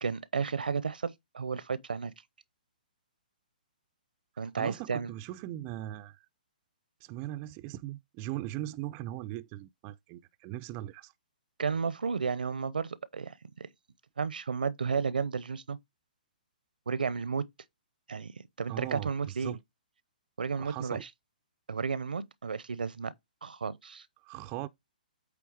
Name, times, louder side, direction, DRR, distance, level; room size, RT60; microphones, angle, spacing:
voice 1, 0.0-2.1 4.4-5.1 11.6-13.7 14.2-15.8 16.9-17.5 18.1-19.6 20.4-21.1 21.7-23.1 23.4-24.1, right 5 dB, 80° right, 0.7 m, -33 dB
voice 2, 4.6-6.3 7.0-11.1 18.7-19.6 20.6-21.0 24.2-24.7, right 15 dB, 30° right, 0.4 m, -39 dB
8.7 x 3.4 x 4.6 m
figure-of-eight pair, 130°, 5 cm